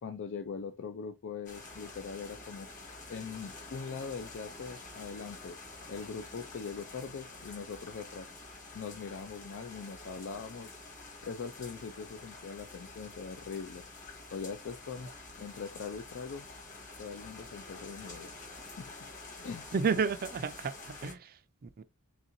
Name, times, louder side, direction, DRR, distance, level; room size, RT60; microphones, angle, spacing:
voice 1, 0.0-2.7 3.1-5.6 5.9-8.3 8.7-10.7 11.2-13.8 14.3-15.1 15.4-16.5 17.0-18.9 19.4-19.7, left 5 dB, 55° left, 0.4 m, -41 dB
sound 1, 1.5-21.1, left 3 dB, 35° left, 1.7 m, -48 dB
voice 2, 19.7-21.8, right 5 dB, 40° right, 0.4 m, -32 dB
4.2 x 3.5 x 2.6 m
head